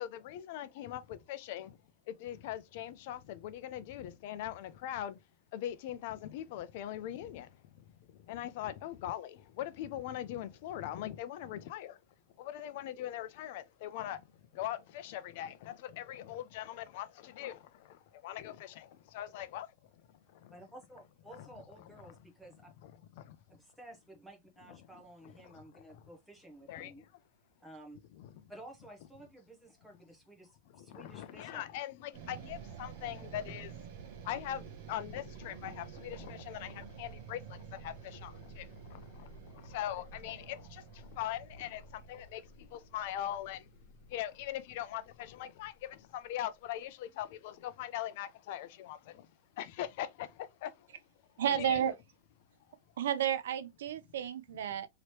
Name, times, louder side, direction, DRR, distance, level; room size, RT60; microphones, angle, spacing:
voice 1, 0.0-1.8 2.1-5.2 5.5-12.0 12.4-14.2 14.5-19.7 20.3-20.5 21.4-21.5 22.8-22.9 23.2-23.4 25.5-26.0 26.7-27.1 28.2-28.3 30.7-33.8 34.2-43.7 44.1-49.3 49.6-50.9 51.5-51.8, left 12 dB, 45° left, 0.4 m, -41 dB
voice 2, 20.5-22.7 23.5-27.0 27.6-28.0 28.5-31.8 51.4-51.6 51.9-52.0, right 1 dB, ahead, 0.8 m, -53 dB
sound 1, 32.1-46.4, right 6 dB, 40° right, 0.7 m, -50 dB
voice 3, 51.4-51.9 53.0-54.9, right 9 dB, 75° right, 0.5 m, -32 dB
3.1 x 2.9 x 2.9 m
supercardioid pair, 175°, 0 cm